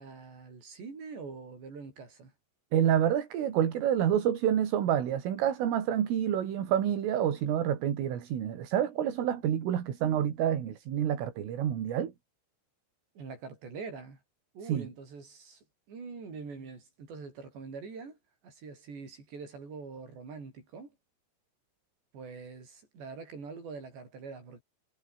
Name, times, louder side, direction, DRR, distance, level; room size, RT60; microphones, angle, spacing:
voice 1, 0.0-2.3 13.2-14.2 14.5-18.2 18.4-20.9 22.1-24.6, right 4 dB, 55° right, 10.0 m, -44 dB
voice 2, 2.7-12.1 14.7-14.9, right 10 dB, 75° right, 5.6 m, -28 dB
omnidirectional pair, 5.9 m